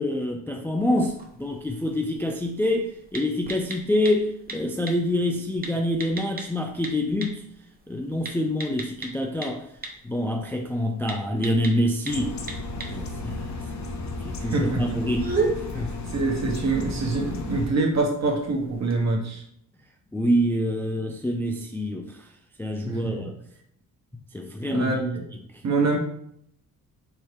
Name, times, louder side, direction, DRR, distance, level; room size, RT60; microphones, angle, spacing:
voice 1, 0.0-7.4 7.9-9.7 10.0-12.4 12.8-13.5 14.2-15.4 15.7-15.9 20.1-22.3 22.6-23.4 24.3-25.0, left 1 dB, 5° left, 0.3 m, -26 dB
sound 1, 0.8-19.0, right 3 dB, 25° right, 0.8 m, -38 dB
sound 2, 12.1-17.7, left 3 dB, 50° left, 0.7 m, -34 dB
voice 2, 14.4-15.0 15.7-19.4 22.8-23.3 24.7-25.2 25.6-26.0, right 3 dB, 50° right, 1.1 m, -25 dB
4.6 x 2.8 x 3.2 m
cardioid pair, 95°, 36 cm